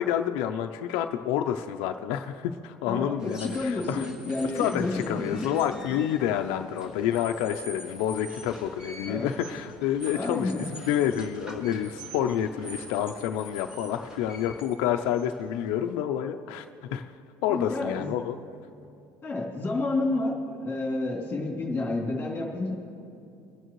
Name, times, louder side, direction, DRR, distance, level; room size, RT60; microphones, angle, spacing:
voice 1, 0.0-4.1 4.5-16.7 16.9-17.1 17.4-18.4, left 10 dB, 80° left, 6 dB, 0.5 m, -28 dB
voice 2, 2.8-5.2 9.1-9.3 10.1-10.7 14.8-15.0 17.5-18.1 19.2-22.7, left 2 dB, 20° left, -3 dB, 3.1 m, -30 dB
sound 1, 3.2-15.9, equal, 10° right, 2.0 m, -45 dB
23.5 x 9.1 x 3.1 m, 2.6 s
cardioid pair, 155°, 9 cm